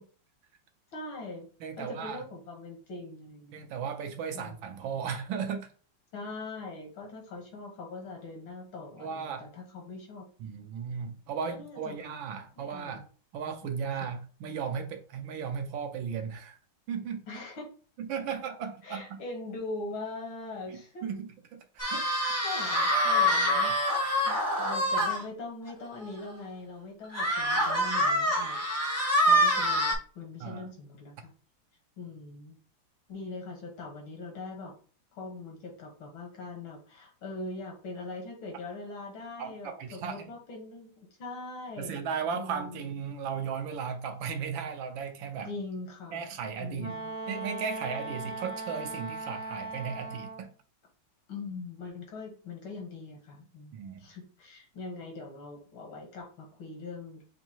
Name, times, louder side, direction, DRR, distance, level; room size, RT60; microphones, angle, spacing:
voice 1, 0.9-1.5 1.8-3.6 4.3-4.6 6.1-10.3 11.5-12.1 12.6-13.0 13.6-14.1 17.3-17.7 18.8-21.1 21.9-28.6 29.3-31.3 32.0-32.6 33.1-34.7 35.2-42.0 42.3-42.8 45.5-46.3 46.6-47.2 51.3-57.2, left 3 dB, 75° left, 2.1 m, -42 dB
voice 2, 1.6-2.2 3.5-5.7 9.0-9.5 10.4-13.0 13.3-16.6 16.9-17.2 18.0-19.2 20.7-22.1 30.4-30.6 39.4-40.3 41.8-45.5 46.1-46.9 47.3-50.5 53.7-54.0, right 6 dB, 75° right, 1.4 m, -36 dB
sound 1, 21.8-25.2 25.7-25.8 26.1-26.2 27.1-29.9, equal, 15° left, 0.5 m, -26 dB
Wind instrument woodwind instrument, 46.8-50.5, right 3 dB, 55° left, 0.8 m, -38 dB
6.7 x 2.7 x 2.9 m
omnidirectional pair, 2.2 m